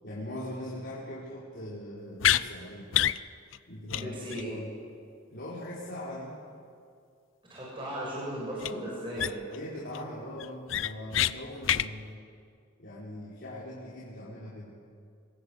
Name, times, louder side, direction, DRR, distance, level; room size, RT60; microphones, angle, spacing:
voice 1, 0.0-2.9 3.7-4.7 5.3-6.4 9.5-12.2 12.8-14.7, left 1 dB, 55° left, -7 dB, 4.7 m, -40 dB
Aluminium bottle cap, 2.2-2.4 2.9-3.2 3.5-3.6 3.9-4.0 4.3-4.4 8.6-8.7 9.2-9.6 9.9-10.0 10.4-11.3 11.6-11.9, left 11 dB, 75° left, 0.6 m, -26 dB
voice 2, 3.9-4.5 7.5-9.4, equal, 25° right, -6 dB, 7.5 m, -36 dB
25.5 x 22.0 x 8.3 m, 2.3 s
head